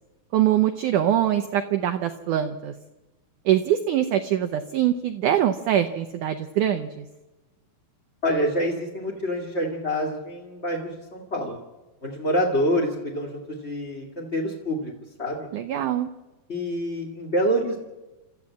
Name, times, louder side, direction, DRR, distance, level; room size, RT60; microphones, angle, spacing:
voice 1, 0.3-2.7 3.4-7.0 15.5-16.1, right 11 dB, 90° right, 9 dB, 1.7 m, -23 dB
voice 2, 8.2-11.6 12.0-14.9 15.2-15.5 16.5-17.8, equal, 25° left, -2 dB, 1.4 m, -26 dB
29.0 x 13.5 x 8.4 m, 1.1 s
omnidirectional pair, 4.8 m